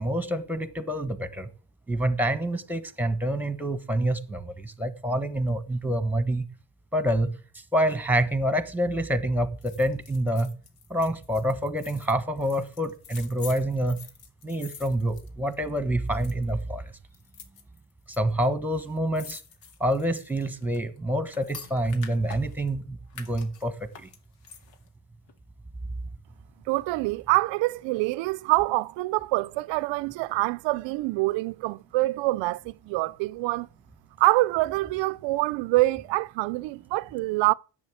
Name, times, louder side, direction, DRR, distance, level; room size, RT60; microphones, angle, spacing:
voice 1, 0.0-1.5 1.9-6.4 6.9-7.3 7.7-10.5 10.9-14.0 14.4-16.8 18.1-19.4 19.8-24.1, right 1 dB, 5° right, 1.3 m, -27 dB
sound 1, 9.6-15.8 16.1-16.6 17.1-18.2 18.4-18.5 18.7-22.7 23.1-24.9 25.3-25.4, left 7 dB, 85° left, 2.1 m, -47 dB
voice 2, 26.7-33.7 34.2-37.5, right 20 dB, 80° right, 0.5 m, -25 dB
10.5 x 7.8 x 7.8 m
cardioid pair, 120°, 43 cm